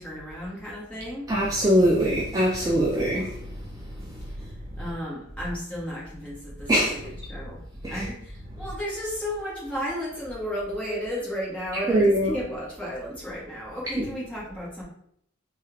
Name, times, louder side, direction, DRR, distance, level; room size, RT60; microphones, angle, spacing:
voice 1, 0.0-1.3 4.8-6.7 7.3-7.6 7.9-14.8, equal, 5° left, 1.2 m, -33 dB
voice 2, 1.3-3.3 6.7-6.9 7.8-8.1 11.9-12.3 13.9-14.0, equal, 20° right, 0.3 m, -22 dB
3.2 x 2.3 x 3.3 m
head